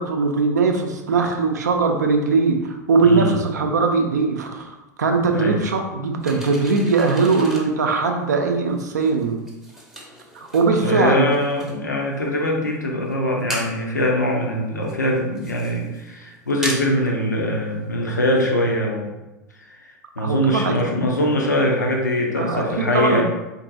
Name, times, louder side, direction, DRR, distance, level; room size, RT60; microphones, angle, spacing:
voice 1, 0.0-9.4 10.3-11.3 20.2-21.0 22.4-22.7 22.9-23.2, right 4 dB, 70° right, 4 dB, 0.5 m, -20 dB
voice 2, 3.0-3.4 5.3-5.6 10.8-19.1 19.7-19.8 20.2-23.2, left 1 dB, 80° left, 0 dB, 0.6 m, -22 dB
sound 1, 6.2-18.5, right 1 dB, 5° right, 0.6 m, -38 dB
3.7 x 2.6 x 2.6 m, 1.0 s
figure-of-eight pair, 85°, 9 cm